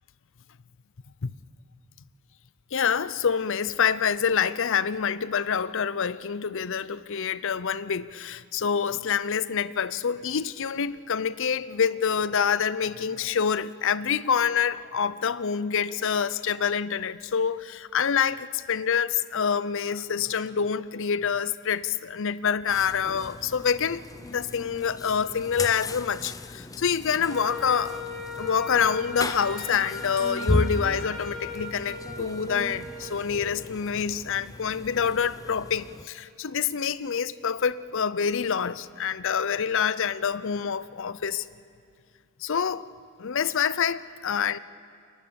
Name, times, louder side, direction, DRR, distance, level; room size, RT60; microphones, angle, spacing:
voice 1, 2.7-24.0 24.3-28.0 28.4-41.5 42.4-42.9 43.2-44.6, left 7 dB, 60° left, 0.6 m, -26 dB
sound 1, 22.7-36.1, left 2 dB, 15° left, 0.6 m, -35 dB
Wind instrument woodwind instrument, 27.3-33.4, left 2 dB, ahead, 6.7 m, -38 dB
29.0 x 23.0 x 7.0 m
head